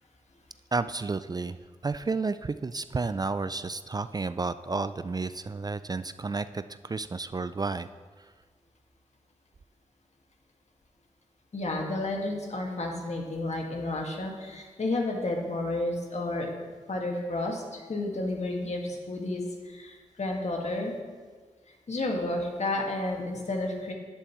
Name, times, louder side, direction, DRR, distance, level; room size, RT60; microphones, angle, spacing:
voice 1, 0.7-1.6 1.8-7.9, right 3 dB, 30° right, 13 dB, 0.3 m, -31 dB
voice 2, 11.5-16.5 16.9-21.0 21.7-23.9, left 2 dB, 55° left, 0 dB, 1.9 m, -31 dB
11.5 x 8.7 x 3.1 m, 1.5 s
cardioid pair, 40°, 13 cm